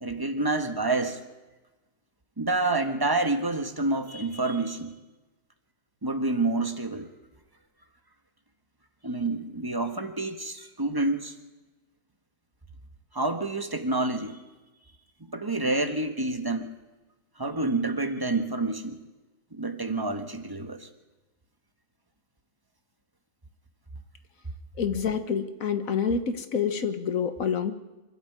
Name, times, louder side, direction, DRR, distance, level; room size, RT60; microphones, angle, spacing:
voice 1, 0.0-1.2 2.4-4.9 6.0-7.1 9.0-11.3 13.1-14.4 15.3-16.7 17.4-19.0 19.5-20.9, right 2 dB, 15° right, 7 dB, 1.4 m, -28 dB
voice 2, 24.8-27.7, left 6 dB, 75° left, 9 dB, 1.7 m, -27 dB
26.0 x 12.0 x 9.1 m, 1.1 s
omnidirectional pair, 1.5 m